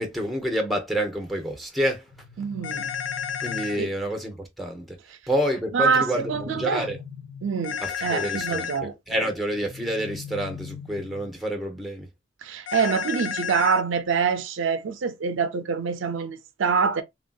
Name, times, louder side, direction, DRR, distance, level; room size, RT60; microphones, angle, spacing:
voice 1, 0.0-2.0 3.4-5.0 5.3-7.0 7.8-12.1, equal, ahead, 0.6 m, -28 dB
sound 1, 2.1-4.0 5.8-7.7 9.5-11.4, left 6 dB, 85° left, 1.3 m, -42 dB
voice 2, 2.4-2.9 3.8-3.9 5.7-6.9 7.4-8.9 12.4-17.0, right 5 dB, 70° right, 0.4 m, -25 dB
sound 2, 2.6-3.8 7.6-8.8 12.7-13.8, left 8 dB, 65° left, 0.5 m, -31 dB
3.3 x 2.6 x 2.2 m
head